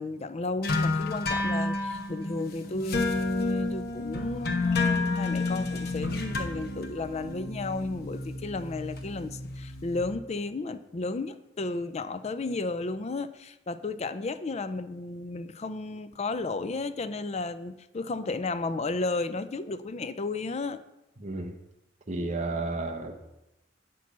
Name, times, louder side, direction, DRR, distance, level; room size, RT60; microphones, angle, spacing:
voice 1, 0.0-20.8, left 3 dB, 35° left, 12 dB, 0.5 m, -33 dB
sound 1, 0.6-10.0, left 3 dB, 55° left, 1.1 m, -31 dB
voice 2, 21.2-21.5 22.1-23.1, right 2 dB, 40° right, 2 dB, 0.9 m, -32 dB
8.4 x 6.1 x 6.0 m, 0.94 s
head